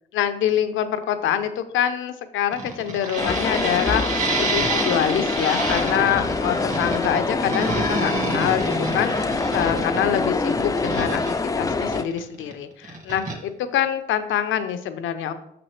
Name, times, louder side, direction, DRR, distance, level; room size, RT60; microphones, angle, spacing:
voice 1, 0.1-15.3, left 9 dB, 80° left, 10 dB, 0.6 m, -25 dB
sound 1, 2.5-12.5 12.8-13.4, right 3 dB, 40° right, 1.7 m, -29 dB
sound 2, 3.2-12.0, left 3 dB, 15° left, 0.4 m, -25 dB
6.4 x 6.0 x 3.2 m, 0.79 s
cardioid pair, 90°, 20 cm